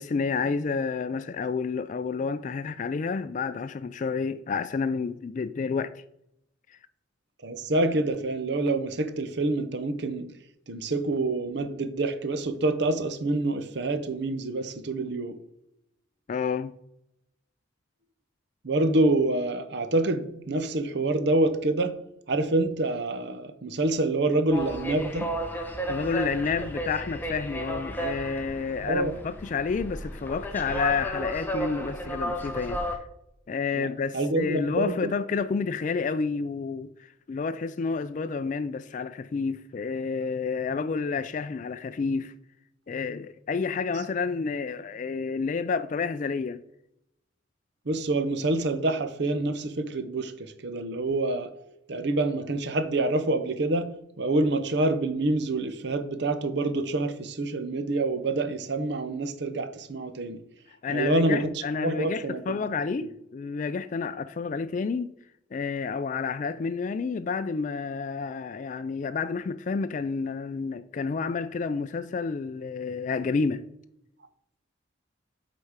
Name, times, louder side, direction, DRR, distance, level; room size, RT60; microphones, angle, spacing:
voice 1, 0.0-6.0 6.7-6.8 16.3-16.7 25.9-33.0 33.5-42.3 42.9-46.6 60.8-65.1 65.5-73.7, left 5 dB, 40° left, 0.3 m, -30 dB
voice 2, 7.4-10.3 10.7-15.4 18.6-22.0 22.3-25.3 28.8-29.1 33.7-33.9 34.1-35.1 47.9-51.5 51.9-53.9 54.2-60.4 60.9-61.5 61.8-62.6, right 2 dB, 60° right, 0.8 m, -27 dB
sound 1, 24.5-33.0, equal, 10° left, 0.8 m, -33 dB
8.1 x 4.2 x 5.0 m
head